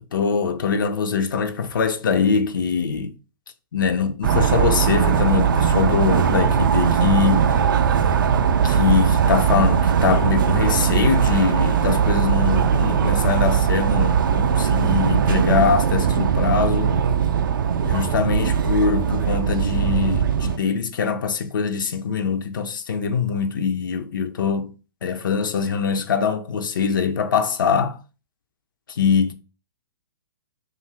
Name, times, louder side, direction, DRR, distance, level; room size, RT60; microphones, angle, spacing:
voice 1, 0.0-3.1 3.7-7.6 8.6-17.0 17.9-24.8 25.0-28.0 28.9-29.3, left 6 dB, 60° left, 0.4 m, -23 dB
sound 1, 4.2-20.6, right 7 dB, 60° right, 0.4 m, -19 dB
2.6 x 2.4 x 2.9 m
figure-of-eight pair, 120°, 12 cm